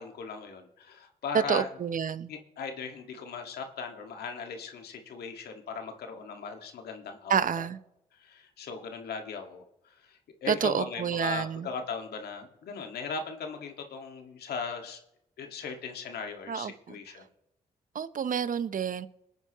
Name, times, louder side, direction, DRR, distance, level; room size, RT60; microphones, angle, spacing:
voice 1, 0.0-1.7 2.3-7.7 8.2-9.6 10.0-15.0 15.4-17.2, left 5 dB, 75° left, 1.9 m, -38 dB
voice 2, 1.3-2.3 7.3-7.8 10.5-11.7 16.5-16.9 17.9-19.1, right 7 dB, 55° right, 0.8 m, -29 dB
20.5 x 9.2 x 3.1 m
supercardioid pair, 45°, 16 cm